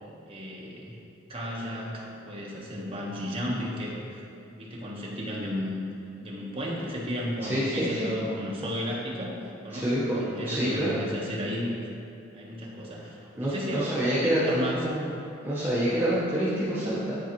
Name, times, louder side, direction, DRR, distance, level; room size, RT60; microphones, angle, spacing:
voice 1, 0.3-1.0 1.3-4.2 4.5-5.8 6.2-9.4 9.6-11.8 12.3-14.9, equal, 30° right, -5 dB, 1.1 m, -34 dB
voice 2, 7.4-8.1 9.7-10.2 10.4-11.0 13.4-15.1 15.4-17.2, equal, 10° right, -11 dB, 1.0 m, -27 dB
10.5 x 4.0 x 3.0 m, 2.6 s
head